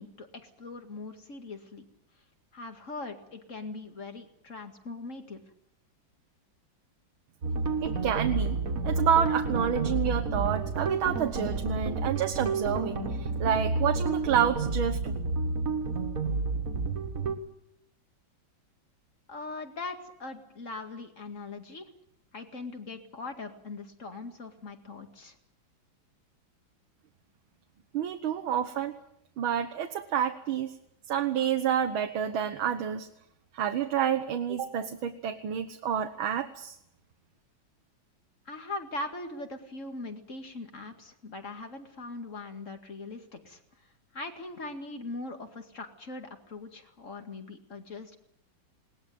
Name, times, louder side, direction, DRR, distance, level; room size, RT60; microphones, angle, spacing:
voice 1, 0.0-1.9 2.5-5.4 19.3-21.9 22.3-25.4 38.5-43.6 44.1-48.2, left 3 dB, 40° left, 6 dB, 2.4 m, -41 dB
sound 1, 7.4-17.4, right 3 dB, 45° right, 2.1 m, -30 dB
voice 2, 7.8-8.6 8.8-15.1 27.9-28.9 29.4-30.7 31.1-33.1 33.5-36.8, right 8 dB, 85° right, 7 dB, 1.9 m, -29 dB
21.0 x 19.0 x 9.3 m, 0.78 s
omnidirectional pair, 2.2 m